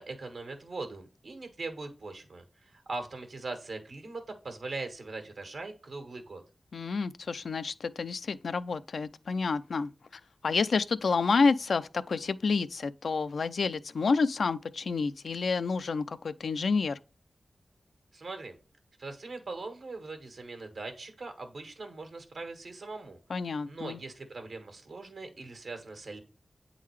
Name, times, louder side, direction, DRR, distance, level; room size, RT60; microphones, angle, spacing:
voice 1, 0.0-6.4 18.1-18.6 19.0-23.2 23.7-26.2, right 3 dB, 80° right, 1.5 m, -41 dB
voice 2, 6.7-9.9 10.4-17.0 23.3-24.0, left 4 dB, 80° left, 0.4 m, -29 dB
8.3 x 3.7 x 3.2 m
cardioid pair, 55°, 0 cm